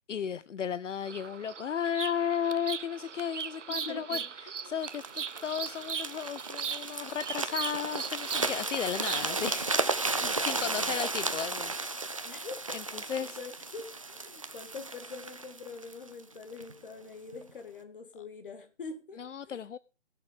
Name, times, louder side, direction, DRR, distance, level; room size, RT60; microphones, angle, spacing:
voice 1, 0.1-11.7 12.7-13.4 19.2-19.8, left 8 dB, 80° left, 0.6 m, -34 dB
Bird vocalization bird call bird song, 1.0-9.5, right 6 dB, 75° right, 0.8 m, -39 dB
voice 2, 3.8-4.3 4.6-4.7 10.2-10.9 12.2-19.6, left 4 dB, 45° left, 2.0 m, -45 dB
sound 1, 4.9-16.7 17.3-17.5, right 3 dB, 30° right, 0.5 m, -34 dB
20.5 x 6.9 x 3.7 m
figure-of-eight pair, 155°, 37 cm